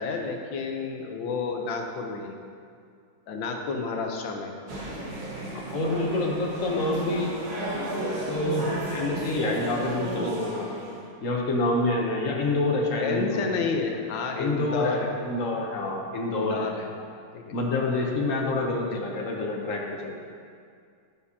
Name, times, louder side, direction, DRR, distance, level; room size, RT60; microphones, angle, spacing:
voice 1, 0.0-2.3 3.3-4.5 13.0-15.1 16.3-16.9 17.3-17.5 18.9-19.0, left 4 dB, 70° left, 2 dB, 1.4 m, -30 dB
sound 1, 4.7-11.1, right 1 dB, 80° right, 2.3 m, -33 dB
voice 2, 5.5-7.3 8.3-10.7 11.2-13.5 14.4-16.7 17.5-20.2, left 2 dB, 55° left, 0 dB, 0.9 m, -27 dB
11.0 x 6.9 x 2.8 m, 2.2 s
omnidirectional pair, 2.3 m